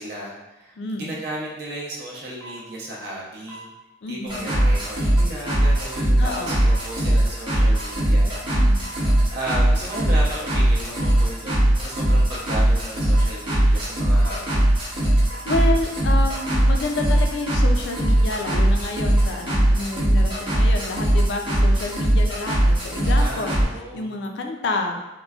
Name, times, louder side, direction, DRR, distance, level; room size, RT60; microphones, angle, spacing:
voice 1, 0.0-3.7 4.1-8.6 9.3-14.7 23.2-24.1, right 1 dB, 55° right, -4 dB, 0.5 m, -34 dB
voice 2, 0.8-1.1 4.0-4.5 6.2-6.6 8.5-8.9 15.2-23.5 23.9-25.0, left 2 dB, 65° left, 3 dB, 0.4 m, -29 dB
sound 1, 2.4-2.7 3.5-3.7 4.6-4.8 5.6-5.8 6.7-6.9 7.7-8.0 8.8-9.1 9.9-10.1 11.0-11.2 12.0-12.3 13.1-13.4 14.2-14.5 15.3-15.5 16.3-16.6 17.8-18.3 18.7-18.8, right 1 dB, 10° left, 0.5 m, -41 dB
sound 2, 4.3-23.6, right 1 dB, 25° right, 0.8 m, -20 dB
3.7 x 2.1 x 2.3 m, 1.0 s
head